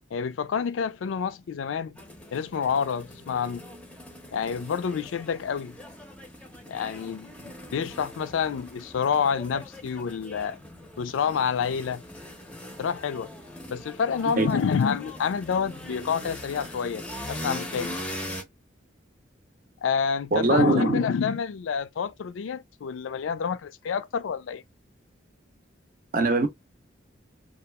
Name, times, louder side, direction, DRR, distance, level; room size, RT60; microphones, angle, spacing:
voice 1, 0.1-2.0 2.3-3.7 4.3-5.7 6.7-10.6 11.0-12.0 12.8-13.3 13.7-18.0 19.8-24.6, left 6 dB, 85° left, 0.4 m, -28 dB
sound 1, 2.0-18.4, left 1 dB, 5° left, 0.5 m, -41 dB
voice 2, 20.3-21.0 26.1-26.5, right 2 dB, 45° right, 0.6 m, -21 dB
2.8 x 2.4 x 2.2 m
head